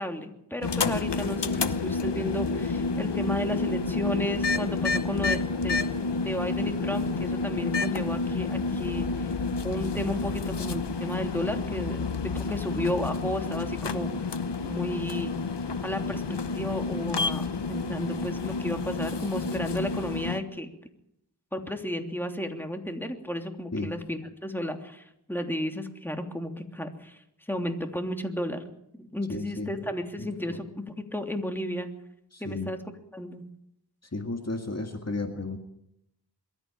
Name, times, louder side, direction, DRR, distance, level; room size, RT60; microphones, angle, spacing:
voice 1, 0.0-5.8 6.2-9.3 9.6-14.1 14.6-15.4 15.8-20.7 21.5-27.2 27.5-28.6 29.0-31.9 32.4-32.8 33.1-33.4, left 1 dB, 5° left, 4 dB, 3.1 m, -33 dB
sound 1, 0.6-20.4, left 4 dB, 90° left, 1.0 m, -29 dB
voice 2, 29.3-29.7 30.2-30.6 32.3-32.7 34.1-35.6, left 2 dB, 40° left, 5 dB, 2.0 m, -33 dB
23.0 x 13.5 x 8.9 m, 0.78 s
wide cardioid pair, 45°, 40 cm